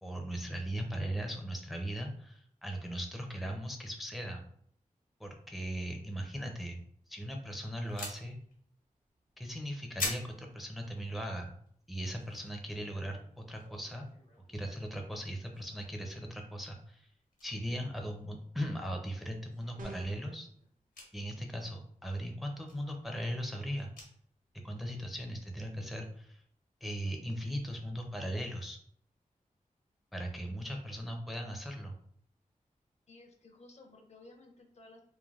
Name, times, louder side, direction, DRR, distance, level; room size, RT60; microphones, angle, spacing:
voice 1, 0.0-4.4 5.2-6.8 7.1-8.4 9.4-11.5 11.9-14.1 14.5-17.1 17.4-20.5 21.1-23.9 24.6-26.4 26.8-28.8 30.1-32.0, equal, ahead, 2 dB, 0.5 m, -38 dB
sound 1, 7.8-15.0 15.3-16.2 16.5-16.8 17.0-17.5 17.9-18.0 18.4-18.5 18.9-24.5 24.9-25.0 25.4-25.5 25.8-26.6, left 3 dB, 90° left, 1.0 m, -46 dB
sound 2, 19.8-20.3, right 3 dB, 70° right, 0.5 m, -46 dB
voice 2, 33.1-35.0, left 2 dB, 50° left, 3 dB, 0.5 m, -56 dB
3.2 x 2.1 x 2.3 m, 0.62 s
wide cardioid pair, 70°, 14 cm